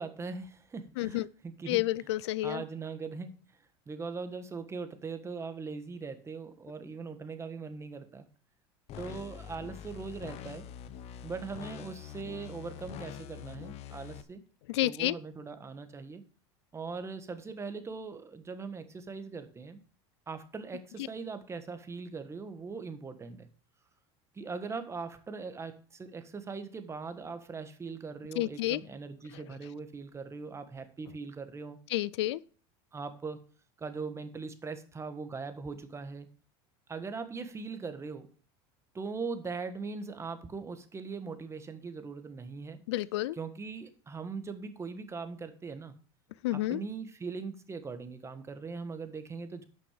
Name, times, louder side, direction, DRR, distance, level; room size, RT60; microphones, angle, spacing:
voice 1, 0.0-1.9 2.4-3.3 3.9-8.3 9.0-10.7 11.2-14.4 14.8-16.2 16.7-19.8 20.3-23.5 24.3-31.8 32.9-33.4 33.8-36.3 36.9-38.3 38.9-42.8 43.3-46.0 46.5-49.6, right 4 dB, 20° right, 1.4 m, -40 dB
voice 2, 1.0-1.3 1.7-2.6 14.7-15.2 28.4-28.8 31.9-32.4 42.9-43.4 46.4-46.8, left 16 dB, 85° left, 0.5 m, -30 dB
sound 1, 8.9-14.2, left 10 dB, 50° left, 1.1 m, -45 dB
11.5 x 6.3 x 5.1 m
supercardioid pair, 115°, 14 cm